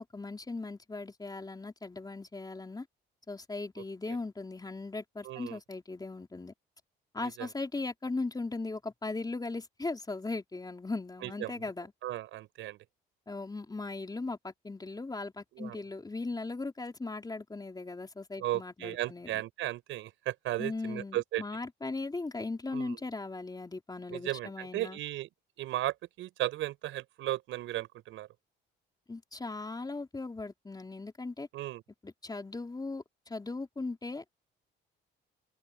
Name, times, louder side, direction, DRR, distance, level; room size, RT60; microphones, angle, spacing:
voice 1, 0.0-2.9 3.3-6.5 7.1-11.9 13.3-19.4 20.6-25.0 29.1-31.5 32.0-34.4, left 3 dB, 20° left, 3.9 m, -38 dB
voice 2, 5.2-5.6 7.2-7.5 11.2-11.5 12.0-12.8 15.5-15.8 18.4-21.4 22.7-23.0 24.1-25.3 25.6-28.3 31.5-31.8, right 15 dB, 80° right, 6.1 m, -35 dB
supercardioid pair, 80°, 20 cm